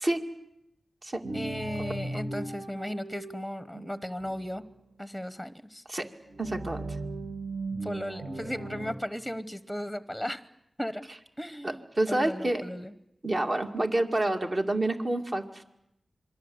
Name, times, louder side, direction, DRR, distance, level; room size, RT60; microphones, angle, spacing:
sound 1, 1.2-4.7 6.3-8.9, right 2 dB, 75° right, 2.2 m, -37 dB
voice 1, 1.3-4.6 5.0-5.8 7.8-10.4 10.8-11.0 11.4-12.9, equal, ahead, 13 dB, 1.0 m, -36 dB
voice 2, 6.4-6.8 11.6-12.6 13.2-15.6, right 1 dB, 45° right, 4 dB, 2.3 m, -28 dB
27.0 x 22.0 x 8.0 m, 0.81 s
wide cardioid pair, 60°, 0 cm